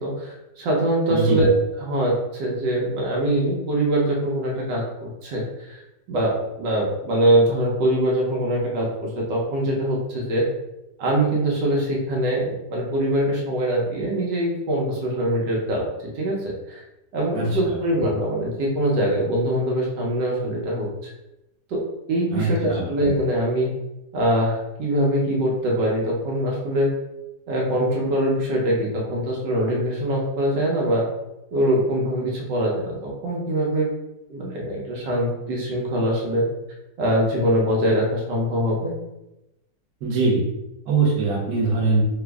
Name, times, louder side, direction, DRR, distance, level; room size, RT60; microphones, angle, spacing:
voice 1, 0.0-1.5 1.8-5.8 6.1-10.5 11.0-15.9 16.1-16.8 17.1-20.9 21.7-21.8 22.1-23.7 24.1-26.9 27.5-31.0 31.5-33.9 34.3-36.4 37.0-38.9, right 1 dB, 85° right, -3 dB, 1.5 m, -23 dB
voice 2, 1.1-1.4 17.3-17.8 22.3-22.9 40.0-40.4 40.9-42.0, right 3 dB, 65° right, -2 dB, 1.3 m, -22 dB
3.4 x 2.0 x 3.4 m, 0.91 s
omnidirectional pair, 1.9 m